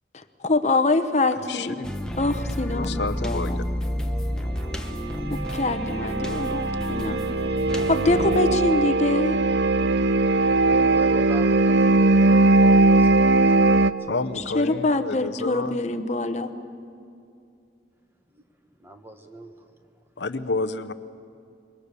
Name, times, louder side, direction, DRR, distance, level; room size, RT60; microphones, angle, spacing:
voice 1, 0.4-1.8 2.2-3.6 5.3-7.2 7.9-9.4 14.5-16.5, left 2 dB, 40° left, 9 dB, 1.0 m, -24 dB
voice 2, 1.5-1.9 2.7-3.6 14.1-15.8 20.2-20.9, left 3 dB, 80° left, 13 dB, 0.8 m, -30 dB
sound 1, 1.8-8.4, equal, 5° left, 1.2 m, -30 dB
sound 2, 5.4-13.9, right 2 dB, 70° right, 0.6 m, -20 dB
voice 3, 10.5-13.9 18.3-18.4 18.8-19.5, right 1 dB, 15° right, 5 dB, 1.5 m, -40 dB
26.0 x 22.5 x 6.9 m, 2.5 s
head